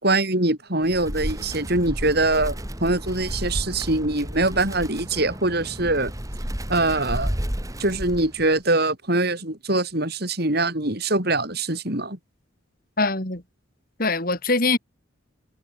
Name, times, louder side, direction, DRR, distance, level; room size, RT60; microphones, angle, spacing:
voice 1, 0.0-6.1 6.7-7.3 7.8-12.2, right 2 dB, 50° right, 4.9 m, -23 dB
Wind, 0.8-8.6, equal, 15° right, 3.9 m, -32 dB
voice 2, 13.0-13.4 14.0-14.8, left 3 dB, 45° left, 4.0 m, -22 dB
head